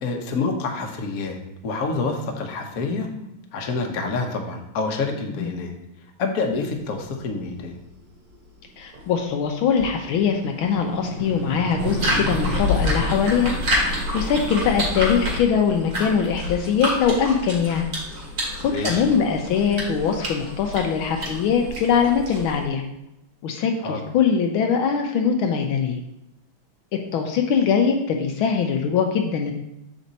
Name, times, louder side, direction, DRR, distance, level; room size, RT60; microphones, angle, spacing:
voice 1, 0.0-3.1 3.5-5.7 6.2-7.8 18.7-19.1 23.8-24.0, left 3 dB, 50° left, 3 dB, 1.3 m, -27 dB
sound 1, 6.8-9.2 9.6-16.3, left 1 dB, 45° right, 3.0 m, -31 dB
voice 2, 8.8-13.5 13.9-17.9 18.6-22.8 23.4-26.0 27.1-29.5, left 6 dB, 75° left, 3 dB, 1.5 m, -22 dB
sound 2, 11.8-22.6, equal, 70° right, 2.8 m, -29 dB
7.3 x 5.2 x 4.0 m, 0.83 s
omnidirectional pair, 2.3 m